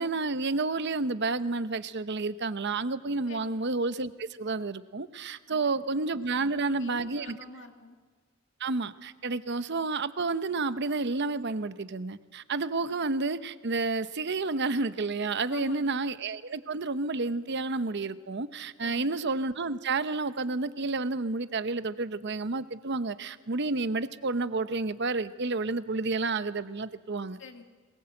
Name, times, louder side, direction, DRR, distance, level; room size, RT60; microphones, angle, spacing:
voice 1, 0.0-7.4 8.6-27.4, right 3 dB, 60° right, 13 dB, 0.9 m, -30 dB
voice 2, 5.5-5.9 6.5-8.0 15.5-16.0 18.8-19.2 27.4-27.6, left 2 dB, 65° left, 5 dB, 2.1 m, -46 dB
22.0 x 20.5 x 7.7 m, 1.5 s
head